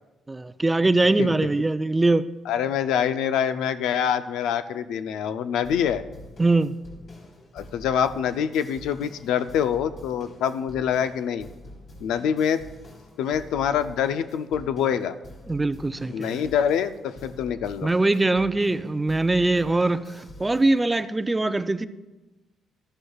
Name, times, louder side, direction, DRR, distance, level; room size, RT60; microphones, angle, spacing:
voice 1, 0.3-2.2 6.4-6.8 15.5-16.5 17.8-21.9, right 2 dB, 15° right, 0.4 m, -22 dB
voice 2, 2.5-6.0 7.5-11.5 12.0-12.6 13.2-15.2 16.1-17.9, left 8 dB, 90° left, 0.4 m, -25 dB
sound 1, 5.6-21.0, left 1 dB, 60° left, 3.5 m, -46 dB
13.5 x 11.0 x 2.4 m
cardioid pair, 90°, 0 cm